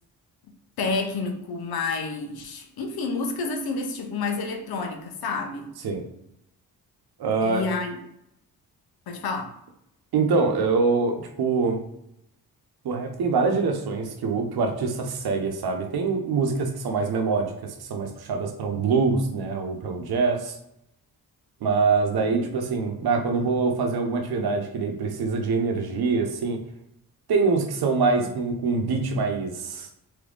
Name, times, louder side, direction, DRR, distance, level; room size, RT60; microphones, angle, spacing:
voice 1, 0.8-5.7 7.4-8.0 9.1-9.5 22.4-22.5, left 4 dB, 70° left, 0.8 m, -29 dB
voice 2, 7.2-7.6 10.1-11.8 12.8-20.6 21.6-26.6 27.3-29.9, right 4 dB, 75° right, 0.9 m, -24 dB
3.5 x 3.0 x 3.7 m
cardioid pair, 65°, 38 cm